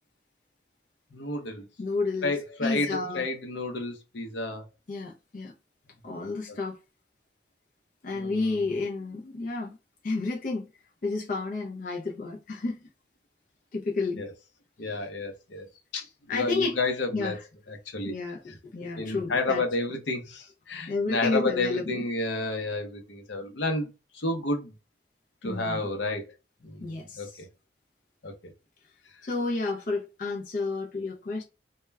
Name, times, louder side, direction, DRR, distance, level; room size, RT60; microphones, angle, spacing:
voice 1, 1.1-1.7 2.2-4.6 8.1-8.6 14.2-14.3 14.8-15.7 15.9-17.4 17.7-18.1 18.5-18.6 19.0-23.9 24.1-24.7 25.4-26.3 26.6-27.5 28.2-28.3, left 2 dB, 75° left, 0.7 m, -31 dB
voice 2, 1.8-2.3 2.6-3.3 4.9-5.5 6.0-6.8 8.0-9.8 10.0-10.7 11.0-12.9 13.7-14.3 15.7-15.8 16.3-16.7 17.1-17.4 18.1-18.4 18.7-19.6 20.9-22.0 25.4-25.9 26.8-27.4 29.2-31.4, left 3 dB, 45° left, 0.4 m, -31 dB
2.2 x 2.1 x 3.2 m
head